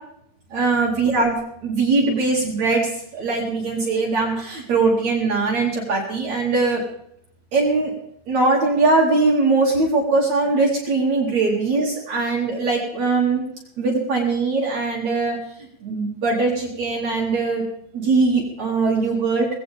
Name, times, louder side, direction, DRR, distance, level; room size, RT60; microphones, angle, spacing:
voice 1, 0.5-6.8 7.5-7.9 8.3-13.4 13.8-15.4 15.8-17.6 17.9-19.5, right 3 dB, 55° right, -2 dB, 3.6 m, -21 dB
18.5 x 16.5 x 3.5 m, 0.70 s
omnidirectional pair, 4.0 m